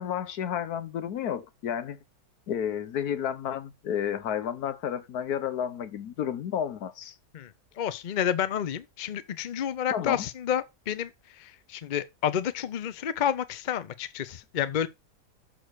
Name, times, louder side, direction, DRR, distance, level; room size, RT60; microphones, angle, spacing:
voice 1, 0.0-2.0 2.5-7.2 9.9-10.2, left 9 dB, 70° left, 1.4 m, -31 dB
voice 2, 7.3-14.9, left 9 dB, 55° left, 0.5 m, -30 dB
6.4 x 6.1 x 4.8 m
omnidirectional pair, 1.7 m